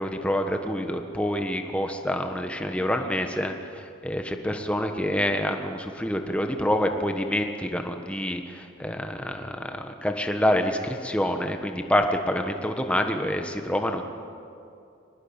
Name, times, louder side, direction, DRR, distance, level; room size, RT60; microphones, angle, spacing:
voice 1, 0.0-14.0, equal, 5° left, 5 dB, 1.4 m, -27 dB
23.0 x 20.0 x 8.9 m, 2.5 s
head